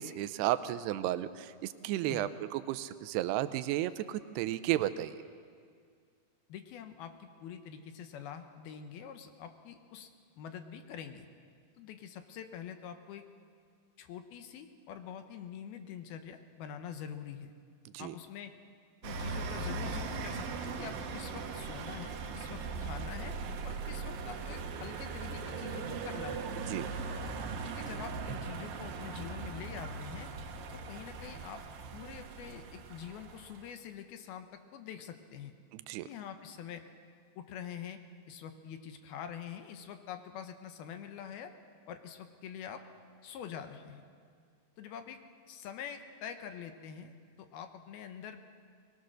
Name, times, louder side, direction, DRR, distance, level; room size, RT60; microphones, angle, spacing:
voice 1, 0.0-5.2 17.9-18.2 26.7-26.9 35.7-36.1, right 14 dB, 85° right, 12 dB, 2.7 m, -33 dB
voice 2, 6.5-10.1 10.4-11.3 11.8-13.2 14.0-17.5 18.0-18.5 19.0-23.4 23.6-26.5 27.6-30.3 30.7-31.6 31.9-35.5 36.0-36.8 37.4-38.0 38.3-41.5 41.9-42.8 43.2-44.0 44.8-45.2 45.5-48.4, left 8 dB, 75° left, 7 dB, 2.6 m, -45 dB
sound 1, 19.0-33.7, right 4 dB, 65° right, 2.5 m, -39 dB
20.5 x 20.5 x 6.4 m, 2.2 s
omnidirectional pair, 4.8 m